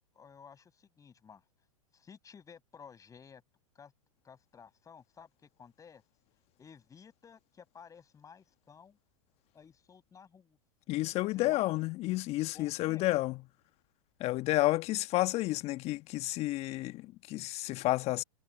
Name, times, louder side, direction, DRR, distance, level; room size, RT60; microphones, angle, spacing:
voice 1, 0.1-1.4 1.9-3.4 3.7-3.9 4.2-6.0 6.6-9.0 9.5-10.6 11.3-11.7 12.5-13.0, left 6 dB, 20° left, 7.4 m, -54 dB
voice 2, 10.9-13.4 14.2-18.2, left 18 dB, 35° left, 1.4 m, -31 dB
hypercardioid pair, 105°, 18 cm